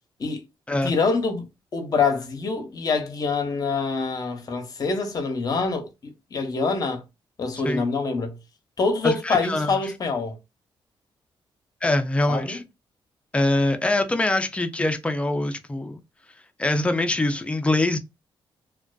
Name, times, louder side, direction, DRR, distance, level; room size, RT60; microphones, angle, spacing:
voice 1, 0.8-1.5 1.7-7.0 7.4-8.4 8.8-10.4 12.3-12.6, left 4 dB, 45° left, 0.7 m, -25 dB
voice 2, 9.0-9.7 11.8-12.6 13.3-16.0 16.6-18.0, left 2 dB, 15° left, 0.4 m, -23 dB
2.4 x 2.3 x 2.2 m
cardioid pair, 120°, 9 cm